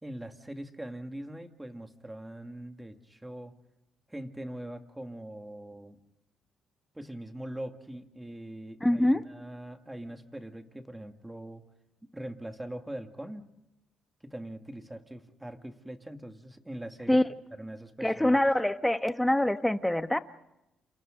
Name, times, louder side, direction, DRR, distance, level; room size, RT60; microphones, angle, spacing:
voice 1, 0.0-3.5 4.1-6.0 6.9-11.6 12.1-13.4 14.2-17.2 17.6-18.4, right 1 dB, 10° right, 6 dB, 2.2 m, -42 dB
voice 2, 8.8-9.2 17.1-17.2 18.0-20.2, left 1 dB, 5° left, 9 dB, 1.3 m, -24 dB
29.5 x 28.5 x 3.9 m, 0.89 s
cardioid pair, 90°, 0 cm